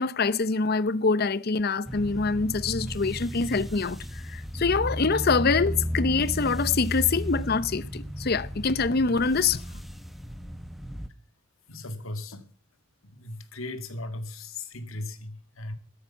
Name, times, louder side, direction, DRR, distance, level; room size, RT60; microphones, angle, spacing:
voice 1, 0.0-9.8, left 4 dB, 50° left, 0.7 m, -25 dB
sound 1, 1.9-11.1, equal, ahead, 0.8 m, -34 dB
voice 2, 11.7-12.5 13.0-15.8, left 2 dB, 85° left, 2.2 m, -37 dB
13.0 x 10.5 x 7.2 m
head